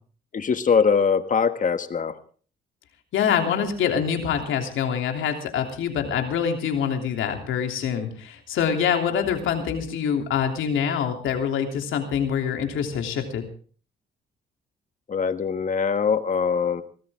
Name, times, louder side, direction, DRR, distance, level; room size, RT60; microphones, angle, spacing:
voice 1, 0.3-2.2 15.1-16.8, left 6 dB, 40° left, 10 dB, 1.5 m, -22 dB
voice 2, 3.1-13.4, left 7 dB, 80° left, 4 dB, 3.2 m, -25 dB
22.5 x 14.5 x 3.7 m, 0.42 s
cardioid pair, 90°, 20 cm